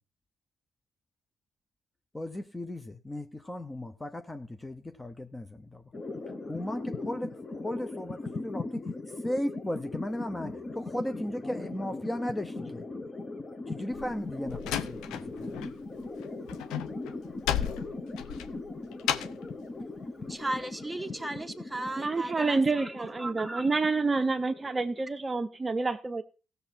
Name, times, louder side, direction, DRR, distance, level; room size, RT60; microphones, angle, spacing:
voice 1, 2.1-5.8 6.5-12.9 13.7-15.7, left 1 dB, 15° left, 0.7 m, -36 dB
sound 1, 5.9-25.4, left 3 dB, 30° left, 1.4 m, -39 dB
Slam, 13.9-15.7 16.0-19.5, left 10 dB, 85° left, 0.7 m, -34 dB
voice 2, 20.3-22.9 23.2-23.7, right 2 dB, 5° right, 1.4 m, -36 dB
voice 3, 22.0-26.2, right 3 dB, 25° right, 0.7 m, -28 dB
16.0 x 6.7 x 4.4 m
cardioid pair, 90°, 0 cm